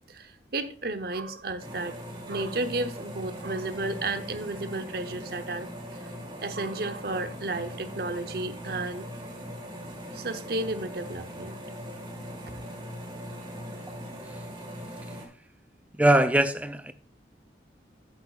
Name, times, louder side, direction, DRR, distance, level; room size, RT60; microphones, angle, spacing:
voice 1, 0.1-2.0 2.3-6.0 6.4-9.1 10.1-11.6, right 2 dB, 55° right, 0.9 m, -33 dB
sound 1, 1.6-15.3, equal, 25° right, 1.8 m, -40 dB
voice 2, 15.9-16.9, right 1 dB, 10° right, 0.5 m, -21 dB
11.0 x 9.3 x 2.5 m
head